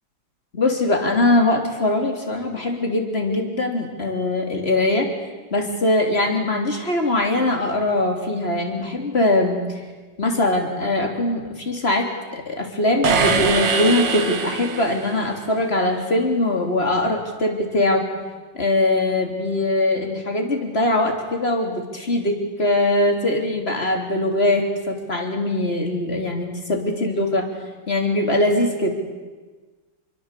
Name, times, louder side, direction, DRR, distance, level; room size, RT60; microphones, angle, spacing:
voice 1, 0.5-5.1 5.5-9.8 10.2-18.1 18.5-27.5 27.9-28.9, left 1 dB, 30° left, 4 dB, 3.5 m, -21 dB
sound 1, 13.0-15.3, right 5 dB, 65° right, 2.3 m, -22 dB
27.0 x 23.0 x 8.3 m, 1.3 s
omnidirectional pair, 2.1 m